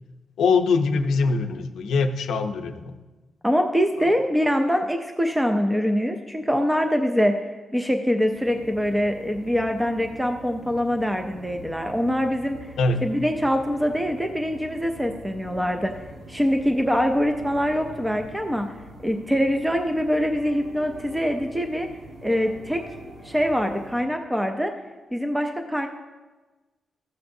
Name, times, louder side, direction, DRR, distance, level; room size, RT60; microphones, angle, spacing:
voice 1, 0.4-2.9 4.0-4.2 12.8-13.0, left 4 dB, 85° left, 5 dB, 0.6 m, -23 dB
voice 2, 3.4-7.4 7.7-12.6 13.0-16.0 16.3-18.7 19.0-21.9 22.2-22.8 23.2-24.7 25.1-25.9, equal, 5° right, 5 dB, 0.4 m, -24 dB
sound 1, 8.3-24.0, right 1 dB, 75° right, 1.3 m, -44 dB
13.5 x 7.0 x 2.6 m, 1.2 s
wide cardioid pair, 145°, 0 cm